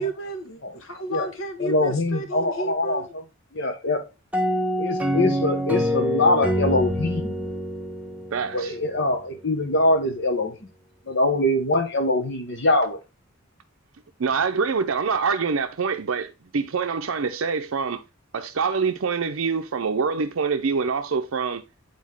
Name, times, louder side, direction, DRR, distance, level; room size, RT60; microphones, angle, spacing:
voice 1, 0.0-3.1, right 2 dB, 75° left, 1.3 m, -32 dB
voice 2, 1.6-3.2 3.5-4.0 4.8-7.5 8.5-10.6 11.1-13.0, left 2 dB, 55° left, 1.1 m, -23 dB
sound 1, 4.3-9.0, equal, 5° right, 0.7 m, -26 dB
voice 3, 8.3-8.7 14.2-18.0 18.3-21.6, right 5 dB, 75° right, 0.5 m, -25 dB
8.5 x 4.1 x 3.5 m
head